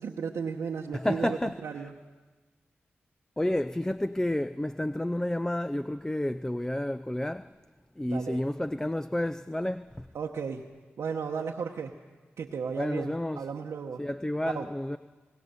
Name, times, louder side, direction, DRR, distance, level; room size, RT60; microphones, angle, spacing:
voice 1, 0.0-1.9 8.1-8.4 10.1-10.7 11.0-11.9 12.4-14.0 14.5-14.7, right 6 dB, 90° right, 0.9 m, -34 dB
voice 2, 0.9-1.9 3.4-7.5 8.0-10.1 12.8-13.5 14.0-15.0, left 1 dB, 10° left, 0.5 m, -30 dB
20.5 x 18.5 x 6.8 m
cardioid pair, 50°, 4 cm